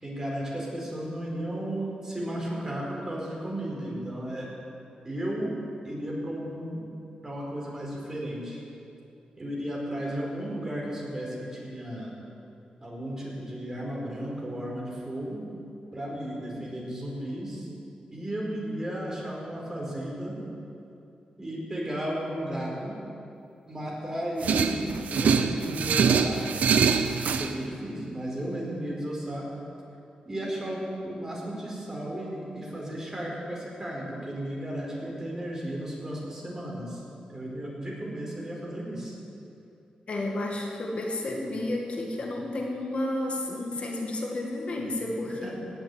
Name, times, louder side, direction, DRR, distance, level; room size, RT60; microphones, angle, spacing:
voice 1, 0.0-4.5 5.0-5.5 5.8-6.8 7.2-8.6 9.4-12.1 12.8-15.4 15.9-17.7 18.1-20.4 21.4-22.9 23.7-24.8 25.1-26.5 27.3-29.4 30.3-37.0 37.3-39.2 45.4-45.5, right 1 dB, 20° right, -4 dB, 4.5 m, -34 dB
sound 1, 24.4-27.5, right 6 dB, 85° right, 0.8 m, -24 dB
voice 2, 40.1-45.5, left 1 dB, 50° left, 0 dB, 2.1 m, -31 dB
17.5 x 7.5 x 9.2 m, 2.7 s
wide cardioid pair, 115°, 2 cm